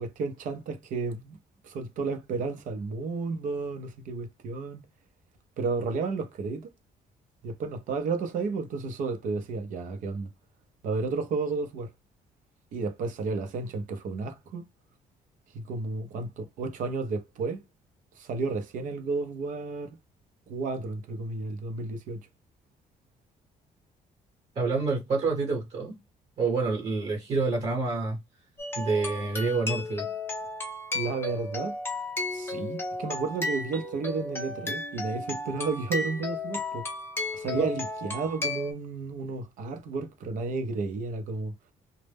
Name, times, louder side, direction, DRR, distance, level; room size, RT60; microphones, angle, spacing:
voice 1, 0.0-1.4 1.6-4.8 5.6-6.7 7.4-10.3 10.8-11.9 12.7-14.7 15.5-17.6 18.2-19.9 20.5-22.2 30.9-31.8 32.3-36.8 37.3-41.5, right 4 dB, 65° right, 0.6 m, -32 dB
voice 2, 24.5-26.0 26.4-28.2 28.8-30.1 37.5-37.7, right 3 dB, 45° right, 1.0 m, -27 dB
sound 1, 28.6-38.7, left 2 dB, 15° left, 0.6 m, -34 dB
2.1 x 2.0 x 3.2 m
cardioid pair, 150°, 14 cm